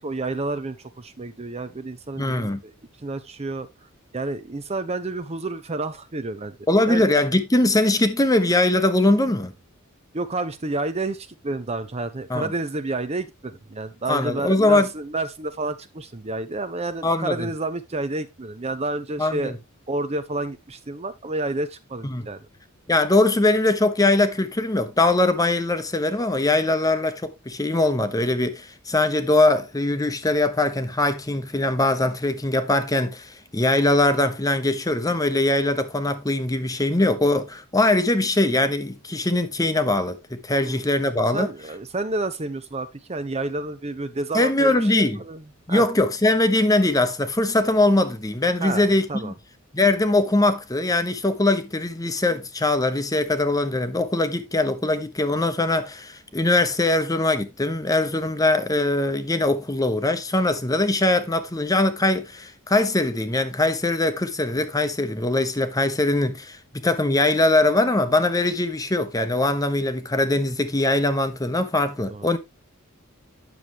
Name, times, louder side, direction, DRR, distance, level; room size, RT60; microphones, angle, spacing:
voice 1, 0.0-2.5 3.0-3.7 4.1-6.6 6.9-7.0 10.1-19.5 19.9-22.4 40.6-40.8 41.3-45.4 45.7-45.9 48.6-48.8 49.1-49.3 72.1-72.3, right 2 dB, 30° right, 0.7 m, -30 dB
voice 2, 2.2-2.6 6.7-9.5 12.3-12.5 14.1-14.9 17.0-17.5 19.2-19.5 22.0-22.3 22.9-41.5 44.3-45.2 45.7-49.3 49.7-72.4, left 2 dB, 15° left, 0.9 m, -21 dB
9.5 x 6.8 x 3.0 m
head